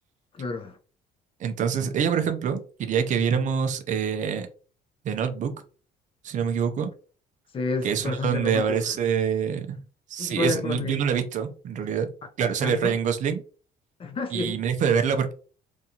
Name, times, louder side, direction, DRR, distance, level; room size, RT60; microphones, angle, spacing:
voice 1, 0.3-0.8 7.5-8.9 10.2-11.0 12.6-13.0 14.0-14.6, left 3 dB, 30° left, 0.5 m, -30 dB
voice 2, 1.4-4.5 5.0-5.5 6.2-6.9 7.8-9.8 10.1-12.1 12.4-13.4 14.3-15.3, right 7 dB, 45° right, 0.5 m, -25 dB
2.6 x 2.3 x 2.8 m
cardioid pair, 110°, 17 cm